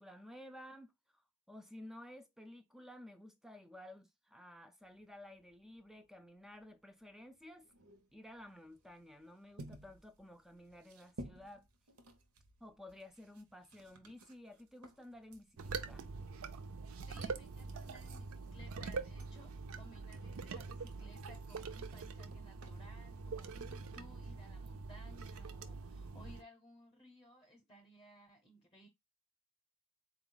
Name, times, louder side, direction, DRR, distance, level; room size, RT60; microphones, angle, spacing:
voice 1, 0.0-7.7 8.1-11.7 12.6-16.0, left 1 dB, ahead, 0.3 m, -54 dB
sound 1, 4.8-22.7, right 1 dB, 85° right, 0.8 m, -58 dB
sound 2, 15.6-26.4, right 4 dB, 70° right, 0.5 m, -44 dB
voice 2, 17.1-28.9, equal, 25° left, 0.7 m, -60 dB
3.9 x 2.3 x 3.8 m
head